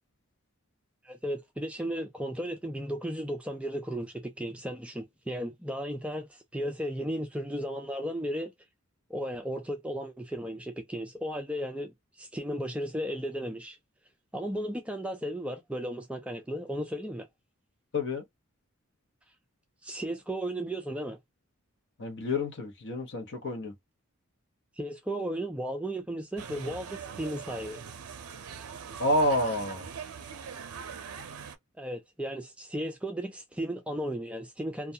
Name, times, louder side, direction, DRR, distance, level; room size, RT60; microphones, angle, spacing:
voice 1, 1.0-8.5 9.1-13.8 14.3-17.3 19.8-21.2 24.8-27.8 31.8-34.9, equal, 5° right, 0.3 m, -35 dB
voice 2, 17.9-18.2 22.0-23.7 29.0-29.9, left 1 dB, 55° left, 0.8 m, -28 dB
sound 1, 26.4-31.6, right 6 dB, 85° right, 0.5 m, -42 dB
2.3 x 2.2 x 2.7 m
head